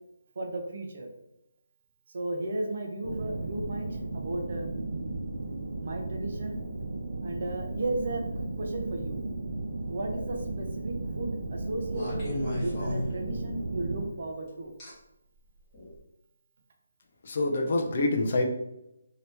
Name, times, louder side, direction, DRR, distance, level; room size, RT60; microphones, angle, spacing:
voice 1, 0.4-1.1 2.1-4.7 5.8-6.6 7.2-9.2 9.9-12.3 12.5-14.7, right 2 dB, 45° right, 2 dB, 0.6 m, -35 dB
sound 1, 3.0-14.1, right 2 dB, 85° right, 0.4 m, -35 dB
sound 2, 10.1-10.5 11.9-13.7 14.8-14.9 15.7-15.9, left 1 dB, 15° left, 1.0 m, -35 dB
voice 2, 17.2-18.4, left 2 dB, 40° left, 3 dB, 0.5 m, -26 dB
2.8 x 2.8 x 3.3 m, 0.85 s
hypercardioid pair, 175°, 0 cm